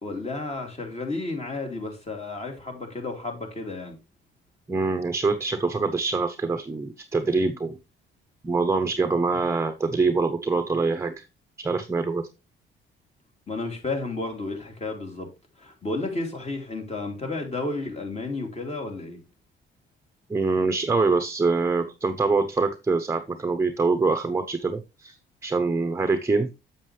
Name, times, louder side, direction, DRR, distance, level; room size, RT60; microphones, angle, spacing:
voice 1, 0.0-4.0 13.5-15.3 15.6-19.2, left 2 dB, 35° left, 2.8 m, -32 dB
voice 2, 4.7-7.8 8.4-11.2 11.6-12.3 20.3-25.2 25.4-26.5, right 3 dB, 15° right, 0.8 m, -24 dB
7.3 x 7.3 x 3.2 m
cardioid pair, 90°, 20 cm